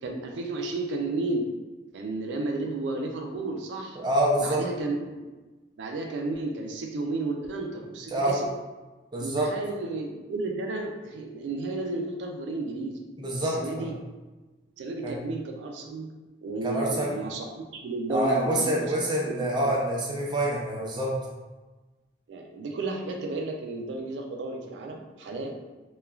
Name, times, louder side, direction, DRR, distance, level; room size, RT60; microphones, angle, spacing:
voice 1, 0.0-1.5 1.9-4.0 4.4-5.3 5.8-8.4 9.2-13.0 13.4-13.9 14.8-16.1 16.4-18.9 19.2-19.7 22.3-25.5, right 2 dB, 90° right, 2 dB, 0.3 m, -32 dB
voice 2, 4.0-4.6 8.1-8.4 9.1-9.5 13.2-13.9 15.0-15.2 16.6-17.1 18.1-21.1, right 1 dB, 25° right, -4 dB, 0.5 m, -26 dB
3.0 x 2.2 x 2.3 m, 1.2 s
head